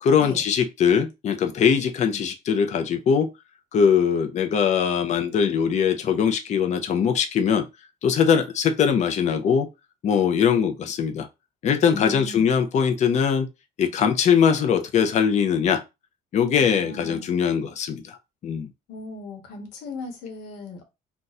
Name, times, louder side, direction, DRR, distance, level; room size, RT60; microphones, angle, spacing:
voice 1, 0.0-3.3 3.7-7.7 8.0-9.7 10.0-11.3 11.6-13.5 13.8-15.8 16.3-18.2 18.4-18.7, left 7 dB, 45° left, 0.5 m, -21 dB
voice 2, 11.9-12.5 16.5-17.3 18.9-20.8, left 3 dB, 85° left, 1.0 m, -37 dB
2.5 x 2.3 x 4.0 m
cardioid pair, 110°, 17 cm